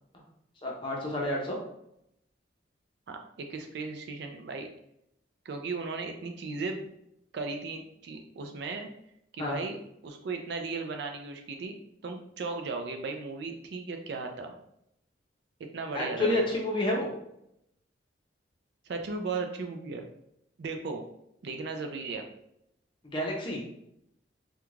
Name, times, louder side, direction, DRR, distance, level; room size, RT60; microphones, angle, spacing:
voice 1, 0.6-1.6 9.4-9.6 15.9-17.1 23.1-23.6, left 1 dB, 25° left, -2 dB, 0.6 m, -29 dB
voice 2, 3.1-4.7 5.5-6.9 7.3-8.9 9.3-11.8 12.0-14.5 15.6-16.4 18.9-20.1 20.6-21.0 21.4-22.3, right 4 dB, 60° right, 4 dB, 0.4 m, -36 dB
2.4 x 2.2 x 3.1 m, 0.77 s
head